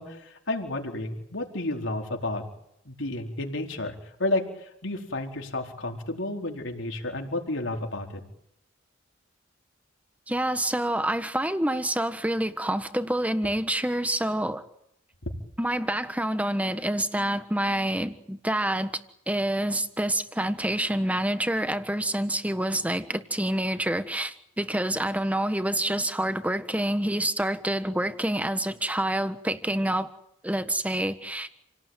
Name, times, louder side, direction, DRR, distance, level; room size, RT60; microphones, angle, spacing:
voice 1, 0.0-2.4 2.8-3.9 4.2-8.2, left 2 dB, 75° left, 4.5 m, -31 dB
voice 2, 10.3-14.6 15.6-18.9 19.3-30.1 30.4-31.5, right 1 dB, 10° right, 1.5 m, -27 dB
29.0 x 18.5 x 9.3 m
head